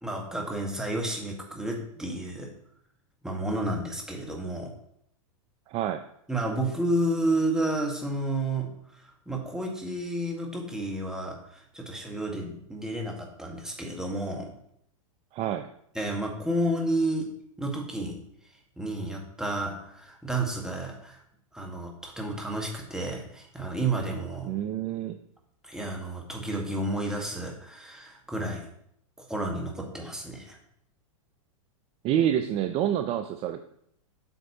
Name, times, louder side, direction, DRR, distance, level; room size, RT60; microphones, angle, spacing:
voice 1, 0.0-2.5 3.2-4.7 6.3-14.5 15.9-17.3 17.6-18.2 18.8-21.2 21.5-24.5 25.6-28.7 29.2-30.6, right 1 dB, 5° right, 0 dB, 1.5 m, -31 dB
voice 2, 5.7-6.0 15.3-15.7 24.5-25.2 32.0-33.6, right 10 dB, 35° right, 9 dB, 0.4 m, -27 dB
8.0 x 6.2 x 2.9 m, 0.72 s
hypercardioid pair, 120°, 18 cm